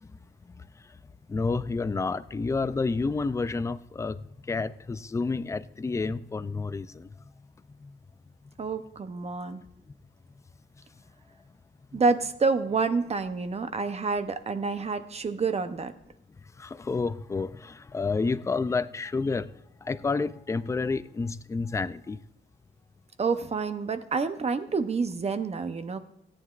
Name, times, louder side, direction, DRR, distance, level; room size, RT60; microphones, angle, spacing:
voice 1, 1.3-7.1 7.8-7.9 11.9-12.0 16.6-19.5 19.8-22.2, left 4 dB, 15° left, 0.3 m, -30 dB
voice 2, 8.6-9.6 11.9-15.9 23.2-26.0, right 4 dB, 30° right, 0.7 m, -28 dB
17.0 x 9.6 x 2.4 m
wide cardioid pair, 160°, 20 cm